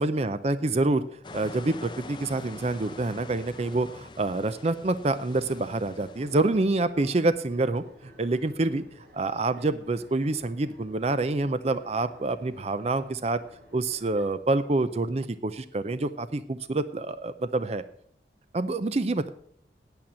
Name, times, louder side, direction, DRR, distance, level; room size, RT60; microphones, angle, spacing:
voice 1, 0.0-7.8 8.2-8.8 9.1-13.4 13.7-17.8 18.5-19.3, right 2 dB, 35° right, 13 dB, 0.5 m, -27 dB
sound 1, 1.2-6.8, left 2 dB, 25° left, 0.6 m, -45 dB
sound 2, 6.0-14.2, equal, 65° right, 3.9 m, -54 dB
8.8 x 8.7 x 7.4 m, 0.64 s
head